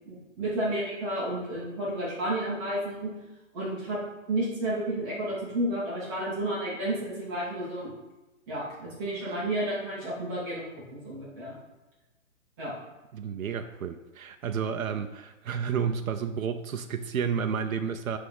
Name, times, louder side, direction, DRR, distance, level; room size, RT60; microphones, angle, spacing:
voice 1, 0.1-3.1 3.5-4.0 4.3-7.9 8.5-10.6 10.9-11.5 12.6-12.7, right 1 dB, 20° right, -7 dB, 2.1 m, -31 dB
voice 2, 13.1-18.2, right 7 dB, 90° right, 6 dB, 0.8 m, -31 dB
9.5 x 3.7 x 5.5 m, 1.1 s
hypercardioid pair, 165°, 40 cm